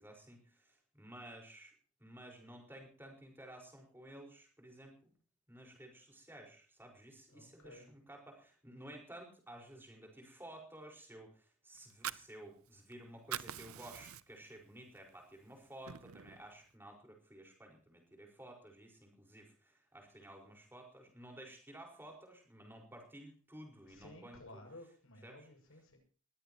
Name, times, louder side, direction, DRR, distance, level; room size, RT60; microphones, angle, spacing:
voice 1, 0.0-1.7 2.0-5.1 5.5-24.6 25.2-25.5, right 1 dB, 10° right, 1 dB, 5.0 m, -54 dB
voice 2, 7.3-7.9 23.9-26.0, left 1 dB, 75° left, 4 dB, 6.7 m, -55 dB
Fire, 11.8-12.9 13.2-14.5 14.9-15.1 15.5-16.5, right 10 dB, 80° right, 0.7 m, -44 dB
21.0 x 16.5 x 3.1 m, 0.40 s
head